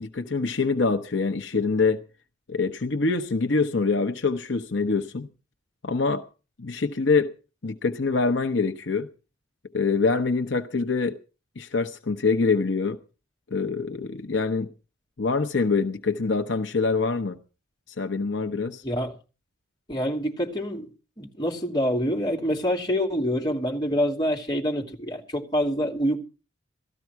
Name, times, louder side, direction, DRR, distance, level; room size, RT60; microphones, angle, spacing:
voice 1, 0.0-2.0 2.5-5.3 5.8-6.2 6.6-7.3 7.6-9.1 9.7-11.2 11.6-13.0 13.5-14.7 15.2-17.4 18.0-18.8, left 4 dB, 65° left, 0.9 m, -25 dB
voice 2, 18.8-19.2 19.9-20.9 21.2-26.2, equal, 20° left, 2.8 m, -26 dB
17.5 x 13.5 x 4.6 m
head